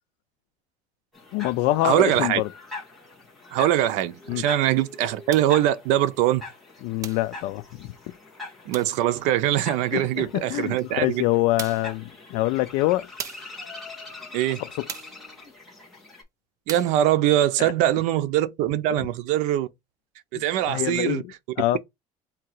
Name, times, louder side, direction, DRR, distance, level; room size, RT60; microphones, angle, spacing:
sound 1, 1.1-16.2, left 3 dB, ahead, 1.6 m, -43 dB
voice 1, 1.3-2.5 4.3-4.4 6.8-7.9 9.9-13.1 17.6-17.7 20.3-21.8, left 17 dB, 70° left, 0.4 m, -25 dB
voice 2, 1.8-2.4 3.5-6.4 8.7-11.2 14.3-14.6 16.7-19.7 20.3-21.2, right 12 dB, 65° right, 0.6 m, -22 dB
sound 2, 5.3-5.6 7.0-7.3 8.7-9.0 10.8-10.9 11.6-12.0 13.2-13.6 14.9-15.2 16.7-17.0, right 8 dB, 25° right, 0.4 m, -37 dB
3.7 x 2.8 x 4.5 m
cardioid pair, 175°, 13 cm